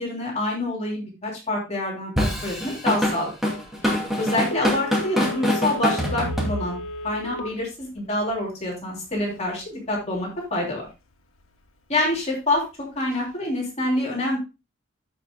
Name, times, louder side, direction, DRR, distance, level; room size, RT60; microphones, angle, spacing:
voice 1, 0.0-3.3 4.2-6.8 7.0-10.9 11.9-12.6 12.9-14.4, left 1 dB, 30° left, -3 dB, 3.1 m, -26 dB
Drum kit / Drum, 2.2-7.0, equal, ahead, 2.4 m, -24 dB
Telephone, 4.5-7.6 8.0-8.1, left 1 dB, 85° left, 1.6 m, -35 dB
15.0 x 5.9 x 2.2 m, 0.28 s
head